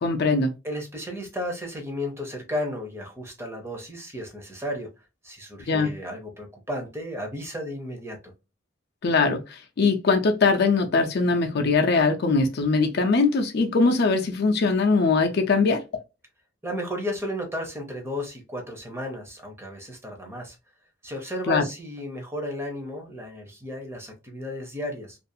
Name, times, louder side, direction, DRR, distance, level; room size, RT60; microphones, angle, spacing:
voice 1, 0.0-0.5 5.7-5.9 9.0-15.8 21.5-21.6, left 4 dB, 55° left, 0.4 m, -21 dB
voice 2, 0.6-4.9 5.2-8.3 16.6-20.6 21.0-25.2, left 1 dB, 15° right, 0.6 m, -34 dB
2.5 x 2.3 x 2.6 m
head